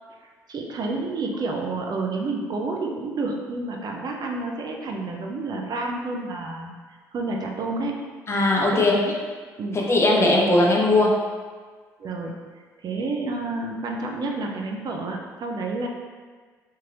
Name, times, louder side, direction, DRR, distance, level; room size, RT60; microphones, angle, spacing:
voice 1, 0.5-6.7 7.1-7.9 8.7-9.1 9.6-9.8 12.0-12.3 12.8-15.9, right 3 dB, 50° right, 1 dB, 0.6 m, -29 dB
voice 2, 8.3-8.9 9.7-11.1, left 2 dB, 30° left, -2 dB, 0.9 m, -19 dB
4.6 x 3.0 x 2.5 m, 1.5 s
hypercardioid pair, 55°, 9 cm